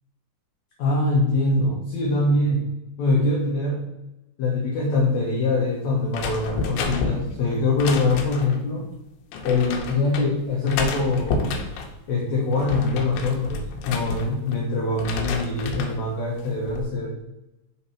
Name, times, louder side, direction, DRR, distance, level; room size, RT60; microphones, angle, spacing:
voice 1, 0.8-2.7 3.0-3.9 4.4-8.8 9.4-11.5 12.1-17.2, left 2 dB, 70° left, -2 dB, 1.8 m, -23 dB
sound 1, 6.1-8.6 9.3-10.3 10.7-11.9 12.4-14.6 14.9-16.0 16.4-16.9, left 4 dB, 90° left, 2.6 m, -30 dB
5.5 x 4.1 x 4.3 m, 0.98 s
omnidirectional pair, 4.3 m